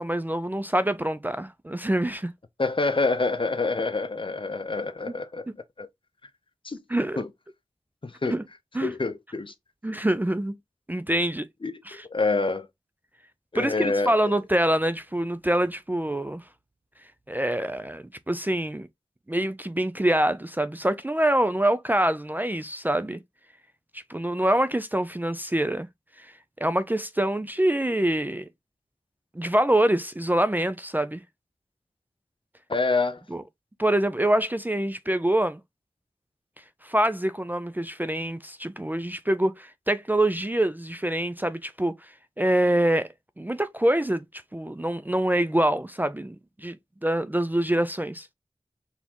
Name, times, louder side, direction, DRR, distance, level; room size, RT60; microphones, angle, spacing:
voice 1, 0.0-2.3 5.1-5.2 6.9-7.2 8.2-8.4 8.7-8.9 9.8-10.6 10.9-11.4 11.9-12.1 13.5-16.4 17.3-18.9 19.3-23.2 23.9-25.9 26.2-26.3 26.6-28.5 29.4-31.2 33.3-33.4 33.8-35.6 36.8-41.9 42.4-43.1 43.4-44.2 44.5-46.8 47.0-48.3, right 1 dB, 15° right, 0.4 m, -25 dB
voice 2, 2.6-5.5 5.8-5.9 6.6-6.8 7.2-7.3 8.0-8.4 8.8-9.5 11.6-11.8 12.1-12.7 13.5-14.1 32.7-33.2, left 3 dB, 45° left, 0.7 m, -26 dB
4.2 x 3.5 x 2.9 m
wide cardioid pair, 70°, 12 cm